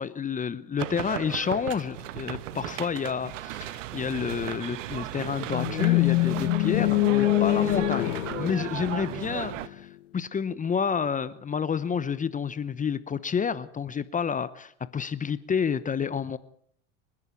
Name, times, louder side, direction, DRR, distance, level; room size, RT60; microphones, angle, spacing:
voice 1, 0.0-16.4, left 6 dB, 20° left, 15 dB, 1.0 m, -29 dB
sound 1, 0.8-9.7, right 13 dB, 75° right, 1.3 m, -36 dB
sound 2, 5.5-9.6, left 17 dB, 80° left, 0.9 m, -24 dB
28.5 x 11.0 x 8.4 m, 0.66 s
hypercardioid pair, 100°, 38 cm